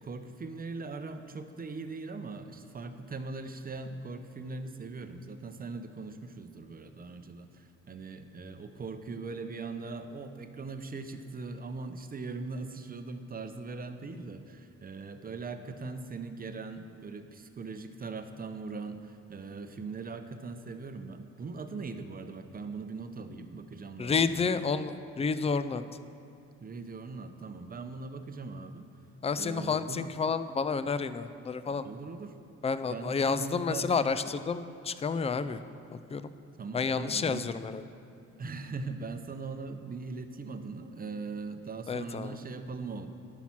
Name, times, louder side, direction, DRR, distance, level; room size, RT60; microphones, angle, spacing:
voice 1, 0.0-24.6 26.6-28.9 29.3-30.1 31.8-32.4 32.9-34.3 36.6-37.5 38.4-43.1, right 4 dB, 30° right, 8 dB, 0.7 m, -40 dB
voice 2, 24.0-25.8 29.2-31.9 32.6-35.6 35.9-36.3 36.7-37.8 41.9-42.4, left 5 dB, 20° left, 13 dB, 0.3 m, -30 dB
10.5 x 5.8 x 5.9 m, 2.6 s
cardioid pair, 90°, 30 cm